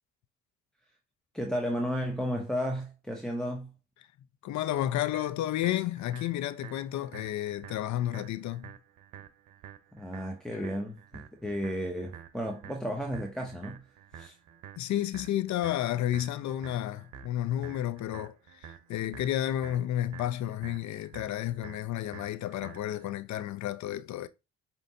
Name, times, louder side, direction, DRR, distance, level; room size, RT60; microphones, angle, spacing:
voice 1, 1.3-3.7 9.9-13.8 14.1-14.4, equal, ahead, 0.7 m, -33 dB
voice 2, 4.4-8.7 10.5-10.6 14.8-24.3, left 12 dB, 55° left, 0.5 m, -31 dB
sound 1, 5.1-23.1, right 9 dB, 65° right, 0.7 m, -50 dB
5.1 x 2.8 x 2.6 m
hypercardioid pair, 55°, 34 cm